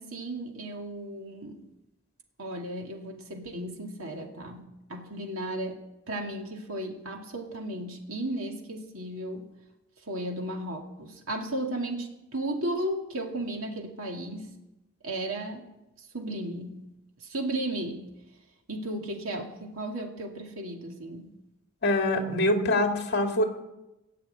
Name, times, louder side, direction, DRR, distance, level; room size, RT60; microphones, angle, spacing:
voice 1, 0.0-1.6 2.4-9.5 10.1-14.5 15.0-15.7 16.0-16.8 17.2-18.1 18.7-21.3, right 1 dB, 75° right, 2 dB, 2.4 m, -35 dB
voice 2, 21.8-23.4, left 1 dB, 50° left, 3 dB, 2.4 m, -24 dB
17.5 x 6.8 x 9.4 m, 0.96 s
head